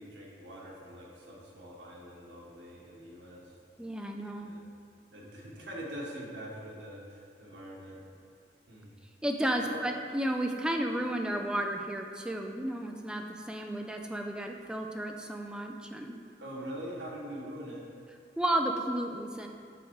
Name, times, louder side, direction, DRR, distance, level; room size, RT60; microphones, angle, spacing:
voice 1, 0.0-3.6 4.4-4.6 5.1-8.0 8.7-8.9 9.6-9.8 16.4-17.9, equal, 85° right, -3 dB, 1.4 m, -43 dB
voice 2, 3.8-4.5 9.2-16.2 18.4-19.5, right 1 dB, 5° right, 3 dB, 0.3 m, -33 dB
7.8 x 3.7 x 4.7 m, 2.3 s
head